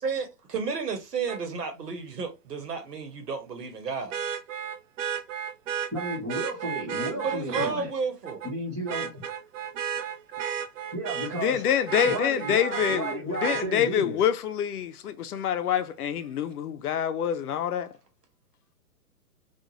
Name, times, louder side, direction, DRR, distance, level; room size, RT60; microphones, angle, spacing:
voice 1, 0.0-4.2 7.1-8.5, right 5 dB, 90° right, 1.1 m, -32 dB
Vehicle horn car horn honking, 1.3-1.4 4.1-7.7 8.3-8.5 8.9-11.5 11.9-13.7 15.5-15.6, right 8 dB, 55° right, 0.6 m, -32 dB
voice 2, 5.9-7.9 8.4-9.2 10.9-11.6 12.0-14.2, right 1 dB, 5° right, 0.4 m, -33 dB
voice 3, 11.4-17.9, left 9 dB, 70° left, 0.6 m, -26 dB
2.4 x 2.4 x 2.9 m
hypercardioid pair, 145°, 46 cm